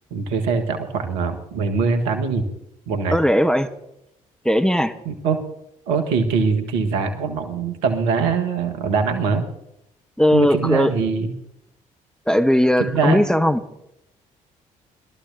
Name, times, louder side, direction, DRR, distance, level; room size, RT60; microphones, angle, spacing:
voice 1, 0.1-2.5 2.9-3.2 5.0-5.4 5.9-9.4 10.3-11.3 12.8-13.2, right 5 dB, 70° right, 6 dB, 1.5 m, -22 dB
voice 2, 3.1-3.7 4.4-4.9 10.2-10.9 12.3-13.6, equal, 5° left, 8 dB, 1.1 m, -18 dB
21.5 x 13.5 x 2.7 m, 0.81 s
figure-of-eight pair, 45°, 18 cm